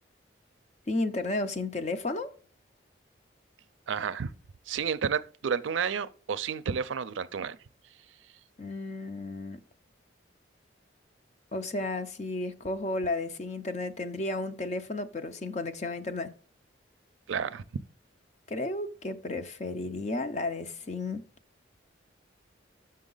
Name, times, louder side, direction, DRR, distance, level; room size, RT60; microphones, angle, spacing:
voice 1, 0.9-2.3 8.6-9.6 11.5-16.3 18.5-21.2, left 2 dB, 35° left, 0.6 m, -33 dB
voice 2, 3.9-4.3 4.7-7.6 17.3-17.6, right 6 dB, 80° right, 0.4 m, -31 dB
6.6 x 6.2 x 3.9 m
head